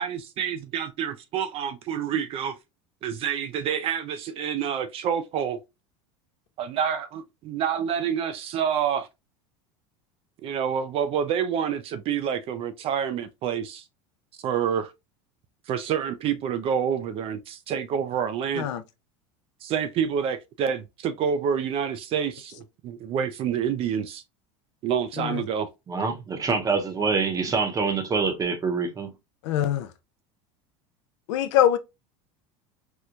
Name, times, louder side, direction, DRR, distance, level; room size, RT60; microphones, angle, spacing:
voice 1, 0.0-2.6 3.0-5.6 6.6-9.1 10.4-13.8 14.4-14.9 15.7-18.7 19.6-24.2 24.8-25.7, right 8 dB, 40° right, 0.4 m, -28 dB
voice 2, 25.9-29.1, right 4 dB, 25° right, 0.7 m, -25 dB
voice 3, 29.4-29.9 31.3-31.8, left 11 dB, 80° left, 0.5 m, -23 dB
4.4 x 2.1 x 2.4 m
supercardioid pair, 130°, 15 cm